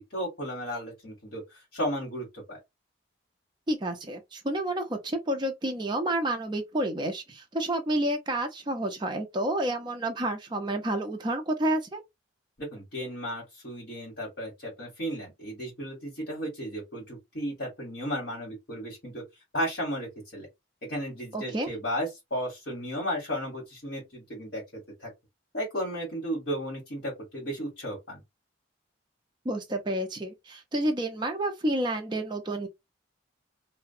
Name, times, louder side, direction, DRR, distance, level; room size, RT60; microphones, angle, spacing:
voice 1, 0.1-2.6 12.6-19.2 19.5-20.5 20.9-24.6 25.0-25.1 25.5-28.2, equal, 55° left, 1.3 m, -34 dB
voice 2, 3.7-12.0 21.3-21.7 29.4-32.7, right 1 dB, 25° right, 0.4 m, -29 dB
2.4 x 2.1 x 2.6 m
head